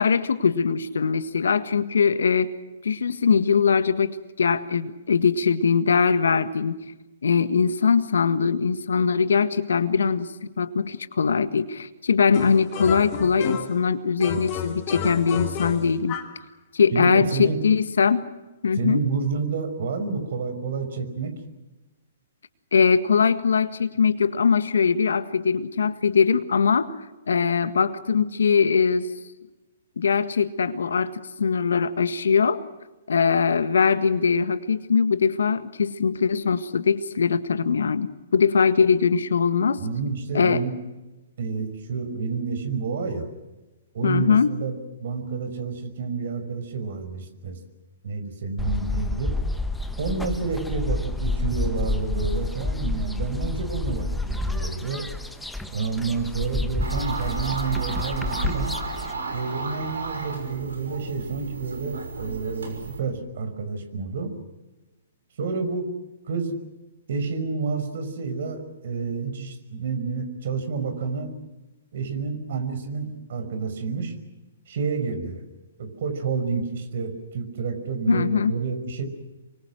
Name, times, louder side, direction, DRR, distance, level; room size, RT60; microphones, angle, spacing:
voice 1, 0.0-2.5 2.8-6.8 7.2-16.2 16.7-18.2 18.6-19.0 22.7-26.9 27.3-29.1 30.0-32.6 33.1-39.8 40.3-40.6 44.0-44.6 78.1-78.5, left 6 dB, 75° left, 12 dB, 1.6 m, -21 dB
sound 1, 12.3-13.8 14.2-16.4, left 8 dB, 35° left, 3.0 m, -32 dB
voice 2, 16.9-17.6 18.8-21.4 39.8-40.8 41.4-43.3 43.9-47.6 48.0-49.3 50.0-55.1 55.7-58.8 59.3-64.3 65.4-65.9 66.3-66.5 67.1-71.3 71.9-74.1 74.7-75.4 75.8-79.0, right 4 dB, 60° right, 9 dB, 5.6 m, -29 dB
sound 2, 48.6-59.1, left 2 dB, 5° left, 1.3 m, -29 dB
sound 3, 56.8-63.0, right 3 dB, 75° right, 6.2 m, -32 dB
27.5 x 24.0 x 6.3 m, 1.1 s
figure-of-eight pair, 125°, 0 cm